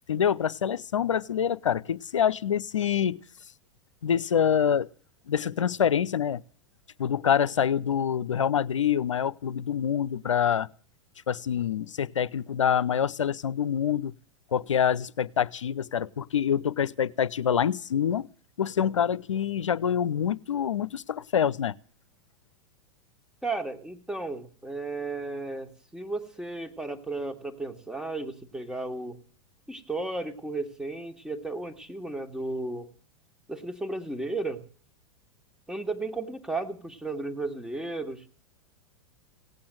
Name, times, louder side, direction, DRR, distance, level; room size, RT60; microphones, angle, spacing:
voice 1, 0.1-3.2 4.0-4.9 5.3-6.4 7.0-10.7 11.3-14.1 14.5-18.3 18.6-21.8, left 8 dB, 80° left, 0.6 m, -26 dB
voice 2, 23.4-29.2 29.7-32.9 33.5-34.6 35.7-38.2, right 2 dB, 5° right, 1.9 m, -34 dB
17.5 x 8.6 x 7.7 m
figure-of-eight pair, 95°, 16 cm